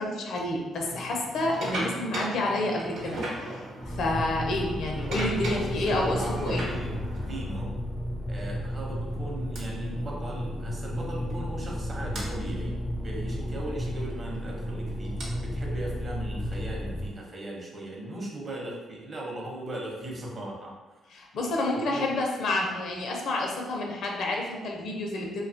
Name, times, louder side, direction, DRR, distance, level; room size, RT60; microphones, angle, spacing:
voice 1, 0.0-6.7 21.1-25.5, left 2 dB, 70° left, 0 dB, 0.6 m, -29 dB
sound 1, 0.8-7.6 8.4-8.6 9.5-9.6 11.0-11.1 11.3-11.5 12.1-12.3 14.0-17.2, right 1 dB, 80° right, 0.8 m, -37 dB
sound 2, 3.8-17.1, equal, 10° left, 0.4 m, -33 dB
voice 2, 5.5-6.4 6.7-7.8 8.3-12.7 13.0-20.8 21.7-22.1, right 1 dB, 35° right, -2 dB, 0.7 m, -38 dB
2.6 x 2.3 x 2.6 m, 1.2 s
cardioid pair, 90°, 0 cm